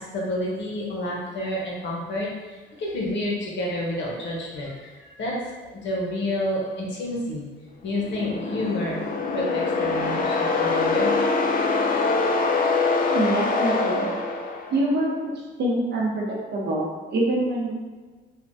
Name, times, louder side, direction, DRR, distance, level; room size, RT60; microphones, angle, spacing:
voice 1, 0.1-5.4 5.7-7.4 7.8-11.1, left 1 dB, 65° left, -3 dB, 0.9 m, -29 dB
sound 1, 7.9-15.0, left 3 dB, 45° left, 0.4 m, -24 dB
voice 2, 13.0-14.1 14.7-15.3 15.6-17.7, right 1 dB, 60° right, -3 dB, 0.8 m, -25 dB
3.3 x 2.2 x 2.6 m, 1.3 s
cardioid pair, 90°, 20 cm